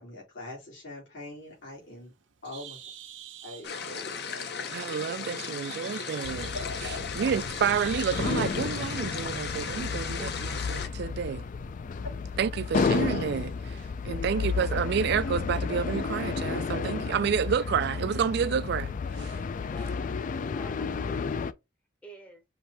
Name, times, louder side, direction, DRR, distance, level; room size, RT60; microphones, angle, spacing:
voice 1, 0.0-2.1 2.4-2.8 3.4-4.5 5.5-5.8 6.5-7.0 14.0-14.5, left 2 dB, 80° left, 2.9 m, -42 dB
Bird, 1.4-8.7, right 10 dB, 85° right, 0.8 m, -48 dB
sound 1, 3.6-10.9, left 6 dB, 60° left, 0.7 m, -36 dB
voice 2, 4.7-6.5 6.8-11.4 12.4-18.9 19.2-19.4, right 7 dB, 60° right, 0.3 m, -30 dB
sound 2, 6.2-21.5, left 5 dB, 45° left, 0.3 m, -32 dB
voice 3, 20.3-21.6 22.0-22.4, right 1 dB, 10° left, 0.7 m, -50 dB
5.6 x 2.7 x 3.3 m
head